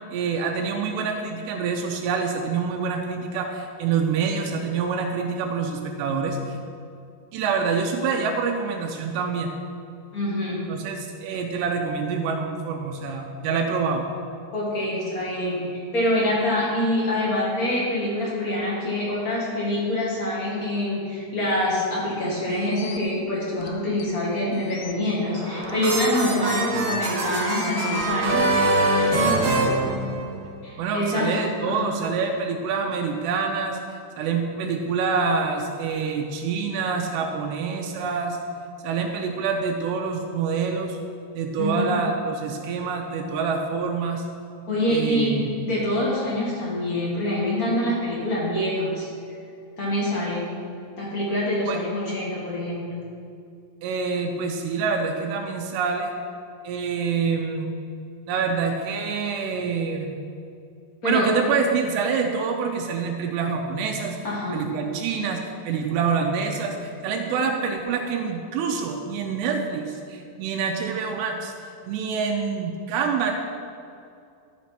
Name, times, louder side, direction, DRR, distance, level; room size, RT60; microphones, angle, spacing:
voice 1, 0.1-6.4 7.3-9.5 10.7-14.1 30.8-33.8 34.2-38.4 38.8-41.0 41.3-44.2 44.9-45.5 51.7-51.8 53.8-56.1 56.6-57.7 58.3-60.2 61.0-64.2 64.5-71.5 71.9-73.3, right 5 dB, 85° right, 2 dB, 2.9 m, -26 dB
voice 2, 10.1-10.6 14.5-15.6 15.9-28.5 28.9-29.4 30.6-31.3 31.6-31.9 41.6-42.0 44.7-45.4 45.7-49.1 49.8-50.5 51.0-53.0 61.0-61.3 64.2-64.6, left 1 dB, 35° left, -6 dB, 1.4 m, -25 dB
sound 1, 22.5-23.0 23.6-23.7 24.0-24.1 24.5-24.9 25.6-25.7 26.0-26.1 27.1-28.7, left 10 dB, 85° left, 2.2 m, -38 dB
sound 2, 25.3-30.6, right 2 dB, 55° right, 2.1 m, -24 dB
13.5 x 5.2 x 5.8 m, 2.5 s
omnidirectional pair, 4.9 m